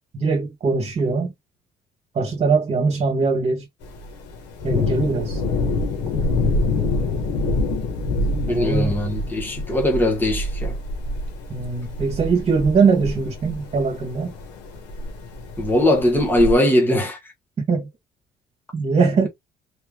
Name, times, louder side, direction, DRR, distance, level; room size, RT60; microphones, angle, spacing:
voice 1, 0.1-1.3 2.1-3.6 4.6-5.4 8.5-9.0 11.5-14.3 17.7-17.9 18.7-19.3, right 4 dB, 40° right, 1.7 m, -21 dB
Thunder, 3.8-16.5, left 2 dB, 85° left, 1.8 m, -26 dB
voice 2, 8.3-10.8 15.6-17.2, left 1 dB, 10° left, 1.5 m, -20 dB
4.3 x 3.3 x 3.7 m
cardioid pair, 110°, 17 cm